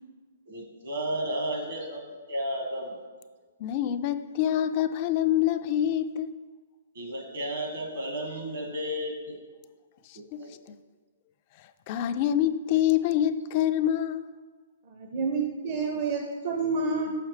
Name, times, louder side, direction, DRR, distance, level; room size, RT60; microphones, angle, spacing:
voice 1, 0.5-2.0 2.3-3.0 6.9-9.4 10.4-10.5, equal, 70° right, 1.5 m, -32 dB
voice 2, 3.6-6.3 10.1-10.4 11.9-14.3, left 11 dB, 40° left, 0.3 m, -26 dB
voice 3, 14.9-17.1, right 4 dB, 45° right, 0.6 m, -29 dB
6.4 x 5.7 x 3.2 m
hypercardioid pair, 140°, 0 cm